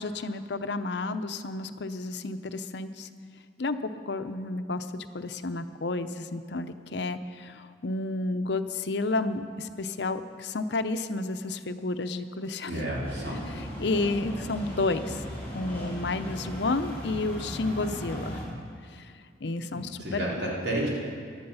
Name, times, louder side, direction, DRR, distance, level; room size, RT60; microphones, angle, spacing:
voice 1, 0.0-3.1 3.6-12.7 13.8-15.2 15.5-18.4 18.9-19.1 19.4-20.2, left 3 dB, 65° left, 10 dB, 0.7 m, -31 dB
voice 2, 12.7-13.4 19.7-20.9, right 1 dB, 65° right, -5 dB, 3.8 m, -31 dB
sound 1, 13.0-18.4, equal, 10° left, 4.0 m, -37 dB
16.5 x 11.5 x 5.6 m, 2.2 s
head